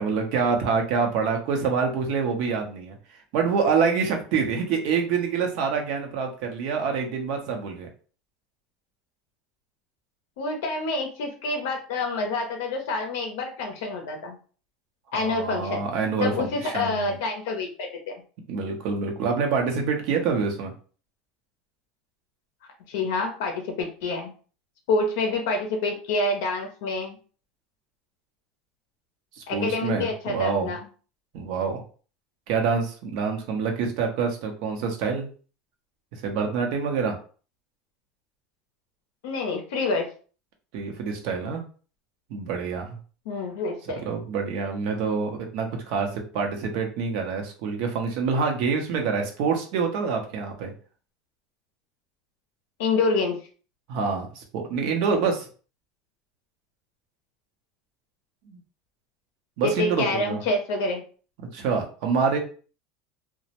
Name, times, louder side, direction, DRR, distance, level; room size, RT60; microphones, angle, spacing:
voice 1, 0.0-7.9 15.1-17.2 18.5-20.7 29.4-30.7 31.3-31.8 32.5-35.3 36.1-37.2 40.7-41.6 42.3-43.0 44.0-50.7 53.9-55.5 58.5-58.6 59.6-60.4 61.5-62.4, right 5 dB, 65° right, 3 dB, 0.7 m, -26 dB
voice 2, 10.4-14.4 15.1-15.8 16.2-18.2 22.9-24.3 24.9-27.2 29.5-30.8 39.2-40.1 43.3-44.0 52.8-53.4 59.6-61.0, left 3 dB, 80° left, 3 dB, 0.5 m, -27 dB
2.1 x 2.0 x 2.8 m, 0.39 s
supercardioid pair, 110°, 0 cm